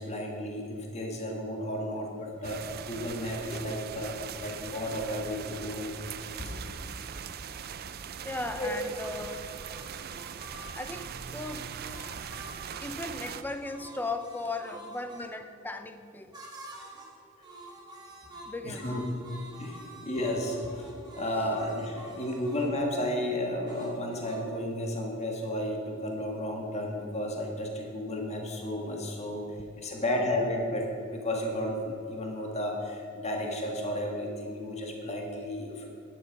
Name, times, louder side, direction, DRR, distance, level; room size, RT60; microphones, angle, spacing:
voice 1, 0.0-5.9 6.2-6.9 8.6-8.7 18.6-19.0 19.6-20.9 21.2-29.4 29.8-35.9, left 1 dB, 30° left, 0 dB, 1.7 m, -33 dB
sound 1, 2.4-13.4, right 7 dB, 50° right, 0.5 m, -41 dB
voice 2, 7.3-7.6 7.9-9.5 10.8-11.7 12.8-16.4 18.5-18.9 30.0-30.3, left 2 dB, 10° left, 8 dB, 0.6 m, -38 dB
sound 2, 9.0-15.3 16.3-17.2 17.4-22.8 23.7-24.4, right 1 dB, 20° right, 2.1 m, -48 dB
11.0 x 10.5 x 5.2 m, 2.8 s
head